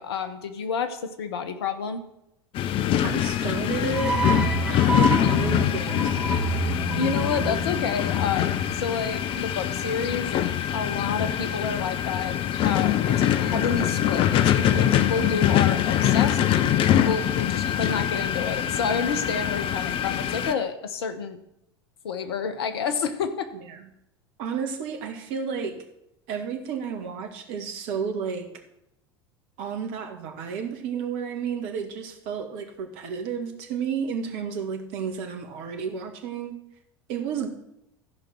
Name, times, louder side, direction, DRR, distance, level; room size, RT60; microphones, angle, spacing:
voice 1, 0.0-2.0 7.0-10.4 10.7-16.4 16.8-21.4 22.0-23.5, left 6 dB, 70° left, 9 dB, 1.1 m, -29 dB
sound 1, 2.5-20.5, left 10 dB, 40° left, 0.6 m, -24 dB
voice 2, 3.0-4.3 4.7-6.4 23.5-23.9 24.4-25.8 26.3-28.5 29.6-36.6 37.1-37.5, right 6 dB, 55° right, 5 dB, 1.7 m, -32 dB
sound 2, 3.9-9.1, right 4 dB, 5° right, 1.8 m, -29 dB
15.0 x 5.2 x 6.1 m, 0.82 s
figure-of-eight pair, 75°, 14 cm